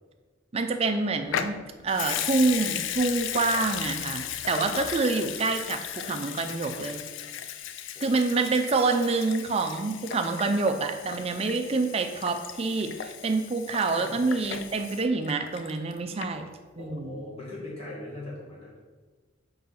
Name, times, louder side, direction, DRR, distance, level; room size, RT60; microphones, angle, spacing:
voice 1, 0.5-1.6 1.8-7.0 8.0-16.5 16.8-17.3, right 3 dB, 30° right, 7 dB, 0.4 m, -27 dB
Water tap faucet / Sink (filling or washing) / Liquid, 1.3-15.9 16.2-16.3, left 9 dB, 65° left, 0.3 m, -36 dB
voice 2, 16.7-18.8, left 2 dB, 30° left, -6 dB, 1.8 m, -40 dB
4.7 x 3.9 x 5.6 m, 1.4 s
head